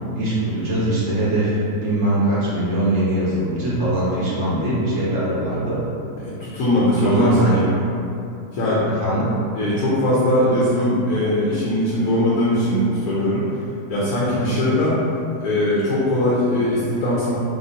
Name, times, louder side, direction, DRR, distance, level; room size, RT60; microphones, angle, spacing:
voice 1, 0.1-5.8 6.9-7.7 9.0-9.4 14.3-14.6, right 1 dB, 50° right, -9 dB, 1.2 m, -21 dB
voice 2, 6.2-7.7 8.5-9.1 9.5-13.4 13.9-15.0 15.4-17.3, left 1 dB, 75° left, -8 dB, 1.1 m, -20 dB
3.1 x 2.9 x 2.8 m, 2.6 s
omnidirectional pair, 1.7 m